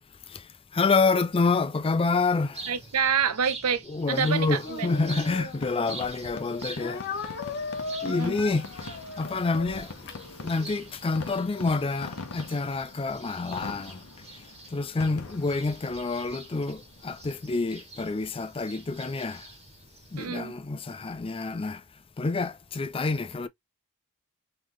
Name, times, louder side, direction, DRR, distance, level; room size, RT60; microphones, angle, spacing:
voice 1, 0.3-2.7 3.9-7.3 8.0-14.0 14.7-19.5 20.1-21.8 22.2-23.5, left 3 dB, 25° left, 0.4 m, -28 dB
sound 1, 2.5-20.3, right 3 dB, 30° right, 1.6 m, -46 dB
voice 2, 2.7-4.9 8.0-8.4 20.2-20.5, right 7 dB, 85° right, 0.7 m, -27 dB
Fireworks, 4.2-17.7, left 3 dB, 70° left, 0.8 m, -44 dB
Speech, 4.6-6.1 6.8-10.8, left 4 dB, 50° left, 1.2 m, -38 dB
3.7 x 3.3 x 3.0 m
head